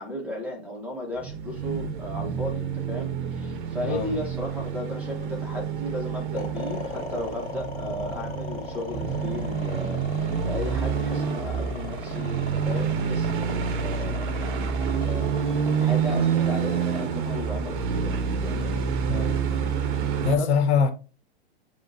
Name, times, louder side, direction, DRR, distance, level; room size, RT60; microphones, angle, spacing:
voice 1, 0.0-18.8 20.4-20.5, left 1 dB, 5° right, 0.9 m, -35 dB
sound 1, 1.2-20.4, right 6 dB, 50° right, 0.7 m, -28 dB
voice 2, 3.9-4.2 19.1-19.4 20.2-20.9, left 6 dB, 80° left, 1.0 m, -23 dB
sound 2, 6.4-18.6, left 5 dB, 65° left, 1.8 m, -39 dB
6.7 x 3.0 x 2.6 m
hypercardioid pair, 145°, 33 cm